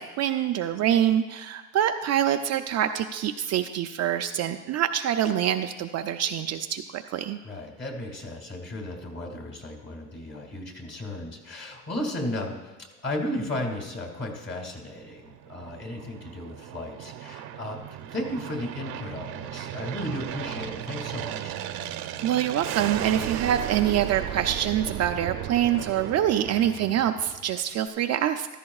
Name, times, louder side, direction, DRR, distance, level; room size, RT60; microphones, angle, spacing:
voice 1, 0.0-7.4 22.2-28.5, right 10 dB, 45° right, 6 dB, 0.4 m, -25 dB
voice 2, 7.4-17.8 18.1-21.5, left 1 dB, 30° left, 2 dB, 2.3 m, -34 dB
Aircraft, 14.8-27.6, right 11 dB, 75° right, 0.8 m, -36 dB
15.0 x 13.5 x 2.4 m, 1.2 s
cardioid pair, 125°, 38 cm